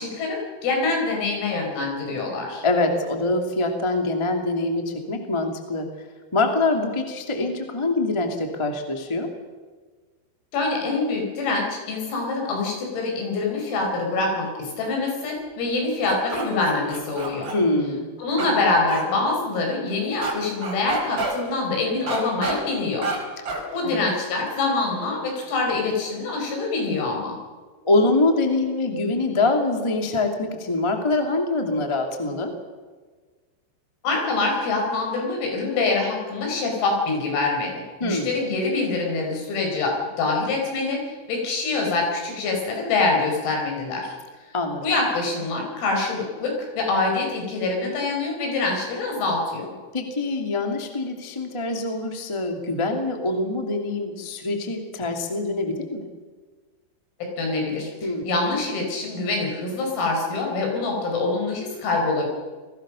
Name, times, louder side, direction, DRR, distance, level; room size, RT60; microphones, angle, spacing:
voice 1, 0.0-2.7 10.5-17.5 18.2-23.1 23.7-27.4 34.0-44.2 44.8-49.7 57.2-57.9 58.2-62.3, left 3 dB, 85° left, 1 dB, 8.1 m, -25 dB
voice 2, 2.6-5.9 6.3-9.3 17.5-18.1 18.4-18.6 23.8-24.0 27.8-32.5 38.0-38.4 44.5-44.8 49.9-56.1 58.0-58.2, left 2 dB, 20° left, 3 dB, 0.7 m, -24 dB
sound 1, 16.0-17.6 18.4-18.5 18.9-19.0 20.2-20.3 20.6-21.3 22.1-22.6 23.0-23.2 23.5-23.6, right 3 dB, 25° right, 4.9 m, -28 dB
29.0 x 20.0 x 6.5 m, 1.4 s
omnidirectional pair, 5.9 m